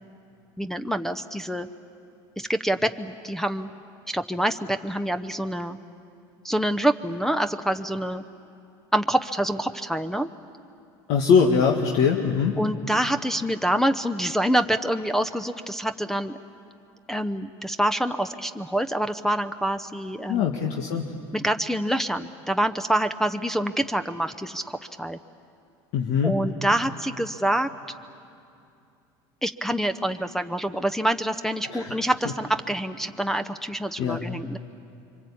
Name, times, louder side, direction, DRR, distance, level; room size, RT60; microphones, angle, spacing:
voice 1, 0.6-1.7 2.4-3.7 4.1-5.8 6.4-8.2 8.9-10.3 12.6-16.4 17.1-20.4 21.3-25.2 26.2-27.7 29.4-34.6, right 1 dB, 5° left, 11 dB, 0.7 m, -26 dB
voice 2, 11.1-12.6 20.3-21.1 25.9-26.3 31.7-32.0 34.0-34.2, left 6 dB, 65° left, 1 dB, 1.7 m, -22 dB
26.5 x 24.0 x 8.6 m, 2.6 s
supercardioid pair, 105°, 12 cm